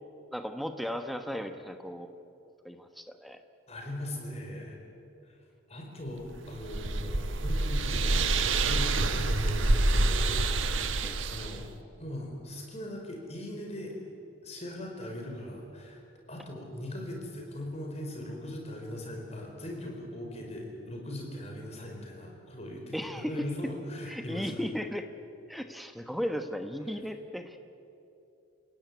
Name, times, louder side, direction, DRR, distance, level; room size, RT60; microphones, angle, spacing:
voice 1, 0.3-2.1 2.6-3.4 11.0-11.2 22.9-23.3 24.1-25.1 25.5-27.6, equal, ahead, 7 dB, 1.2 m, -36 dB
voice 2, 3.7-4.9 5.2-5.4 5.7-10.3 10.7-10.9 11.3-11.6 12.0-13.9 14.4-16.0 16.3-24.6 26.9-27.0, left 1 dB, 35° left, 1 dB, 4.8 m, -40 dB
sound 1, 6.3-11.6, right 2 dB, 80° right, 1.3 m, -27 dB
29.0 x 17.0 x 9.6 m, 2.7 s
head